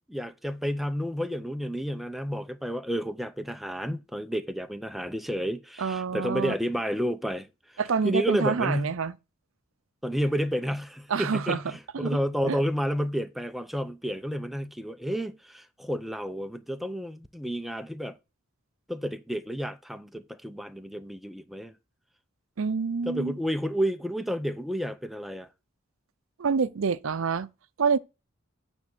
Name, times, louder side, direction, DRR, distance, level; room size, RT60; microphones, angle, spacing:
voice 1, 0.1-8.9 10.0-18.2 18.9-21.7 23.1-25.5, equal, ahead, 0.6 m, -31 dB
voice 2, 5.8-6.5 7.8-9.1 11.1-12.2 12.4-12.6 22.6-23.3 26.4-27.5 27.8-28.0, right 5 dB, 70° right, 0.5 m, -27 dB
9.1 x 3.5 x 5.9 m
head